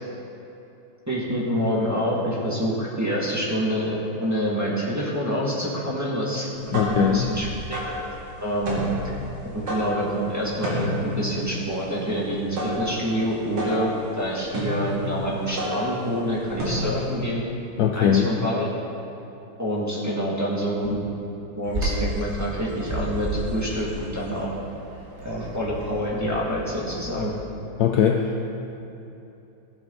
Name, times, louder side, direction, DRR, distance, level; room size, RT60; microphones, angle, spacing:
voice 1, 1.1-3.9 4.2-7.9 8.4-8.8 9.4-17.4 17.9-18.7 19.6-20.9 21.6-24.5 25.2-27.3, equal, 10° right, -6 dB, 1.6 m, -27 dB
sound 1, 6.4-17.2, left 1 dB, 75° right, 2.7 m, -31 dB
voice 2, 6.7-7.3 17.8-18.5 27.8-28.4, left 8 dB, 80° left, 4 dB, 0.8 m, -21 dB
Bird vocalization bird call bird song, 21.6-27.3, right 1 dB, 40° right, 2.5 m, -33 dB
16.5 x 7.1 x 3.9 m, 2.9 s
omnidirectional pair, 2.3 m